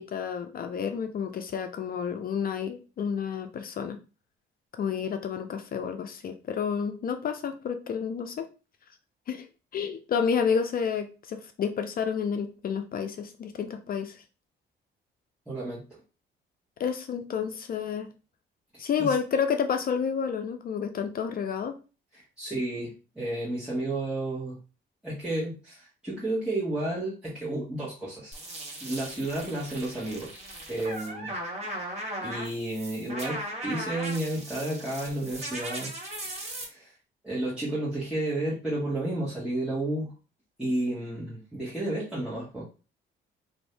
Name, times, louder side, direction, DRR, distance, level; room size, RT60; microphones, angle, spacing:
voice 1, 0.0-4.0 4.8-8.5 9.3-9.5 9.7-14.2 16.8-18.1 18.8-21.8, left 6 dB, 50° left, 7 dB, 0.4 m, -30 dB
voice 2, 15.5-15.8 18.7-19.1 22.1-24.6 25.0-28.4 28.8-30.4 30.7-31.3 31.6-35.9 36.2-36.9 37.2-40.1 40.6-42.6, right 1 dB, 5° right, -9 dB, 1.3 m, -32 dB
sound 1, 28.3-36.6, right 1 dB, 35° right, 1.3 m, -38 dB
2.6 x 2.6 x 3.2 m, 0.33 s
cardioid pair, 90°, 20 cm